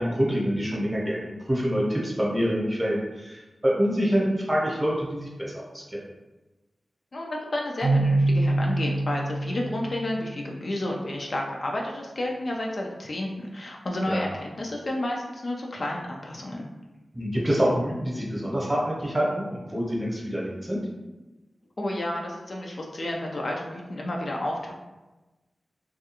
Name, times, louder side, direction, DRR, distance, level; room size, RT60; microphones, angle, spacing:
voice 1, 0.0-6.0 14.0-14.2 17.1-20.8, equal, 20° right, -4 dB, 0.8 m, -26 dB
voice 2, 7.1-16.6 21.8-24.7, left 1 dB, 55° left, 0 dB, 0.4 m, -31 dB
Keyboard (musical), 7.8-10.7, right 2 dB, 65° right, 0.3 m, -25 dB
2.3 x 2.3 x 2.8 m, 1.1 s
wide cardioid pair, 65°, 0 cm